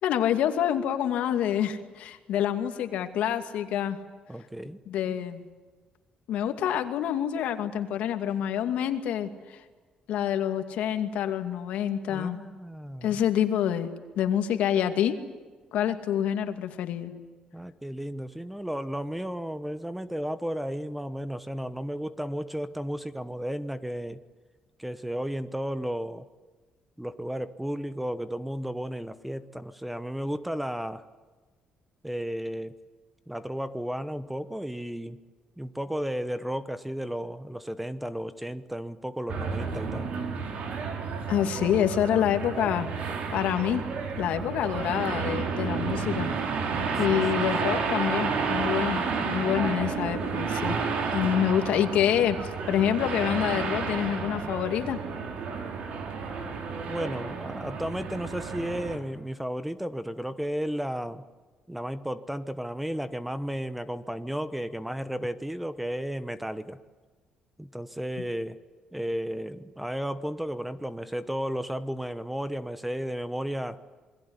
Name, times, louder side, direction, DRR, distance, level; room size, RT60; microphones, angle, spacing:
voice 1, 0.0-4.0 4.9-5.4 6.3-9.6 10.1-12.4 13.0-13.9 14.2-15.2 15.7-17.1 41.3-43.8 44.2-46.3 47.0-50.8 51.1-52.4 52.7-55.0, left 10 dB, 80° left, 7 dB, 2.5 m, -27 dB
voice 2, 4.3-4.8 12.1-13.2 17.5-24.2 24.8-26.3 27.0-31.0 32.0-32.7 33.3-35.2 35.6-40.1 56.8-61.2 61.7-66.8 67.6-68.6 68.9-73.8, equal, 5° right, 13 dB, 1.0 m, -33 dB
sound 1, 39.3-59.0, right 5 dB, 60° right, 4.5 m, -31 dB
27.5 x 21.5 x 9.8 m, 1.4 s
cardioid pair, 160°, 2 cm